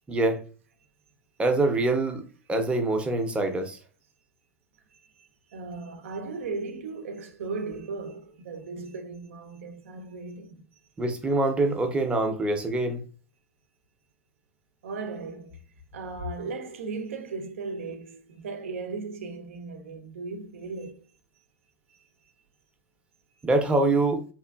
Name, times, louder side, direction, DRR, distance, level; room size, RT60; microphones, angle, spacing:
voice 1, 0.1-0.4 1.4-2.2 2.5-3.8 11.0-13.0 23.4-24.2, right 2 dB, 15° right, 0.6 m, -24 dB
voice 2, 4.9-10.6 14.8-15.6 15.9-21.0 21.9-22.1, right 4 dB, 70° right, 0.5 m, -37 dB
2.9 x 2.4 x 2.2 m
hypercardioid pair, 95°, 7 cm